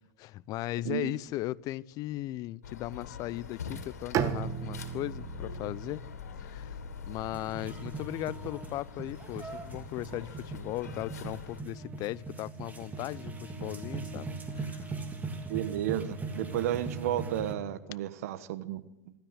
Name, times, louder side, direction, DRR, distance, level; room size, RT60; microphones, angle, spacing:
voice 1, 0.2-6.0 6.4-6.8 7.1-14.9, left 16 dB, 45° left, 0.6 m, -37 dB
sound 1, 2.6-11.6, left 6 dB, 85° left, 2.7 m, -45 dB
Bowed string instrument, 4.1-8.1, right 9 dB, 40° right, 1.5 m, -36 dB
sound 2, 7.3-17.5, right 3 dB, 20° right, 3.3 m, -40 dB
voice 2, 15.5-18.8, right 12 dB, 70° right, 1.3 m, -32 dB
26.0 x 13.0 x 8.1 m
hypercardioid pair, 95°, 8 cm